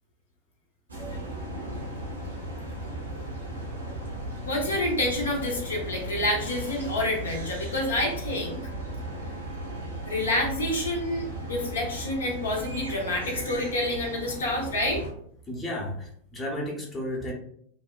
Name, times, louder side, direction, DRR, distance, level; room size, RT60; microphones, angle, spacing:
sound 1, 0.9-15.1, right 1 dB, 80° right, 0.8 m, -36 dB
voice 1, 4.4-8.6 10.1-15.0, left 1 dB, 70° left, -1 dB, 0.6 m, -28 dB
voice 2, 15.5-17.3, left 1 dB, 15° left, -2 dB, 0.7 m, -33 dB
2.7 x 2.1 x 2.2 m, 0.65 s
figure-of-eight pair, 90°, 0 cm